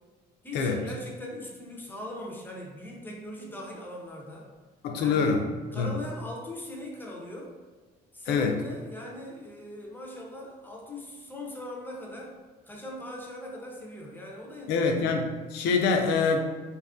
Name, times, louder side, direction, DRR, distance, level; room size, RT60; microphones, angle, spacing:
voice 1, 0.4-4.5 5.0-5.3 5.7-7.5 8.1-12.4 12.6-14.9, left 1 dB, 10° left, -2 dB, 0.5 m, -40 dB
voice 2, 4.8-5.5 5.7-5.9 8.3-8.6 14.7-16.4, left 4 dB, 80° left, 4 dB, 0.4 m, -25 dB
2.6 x 2.4 x 2.4 m, 1.3 s
cardioid pair, 110°, 17 cm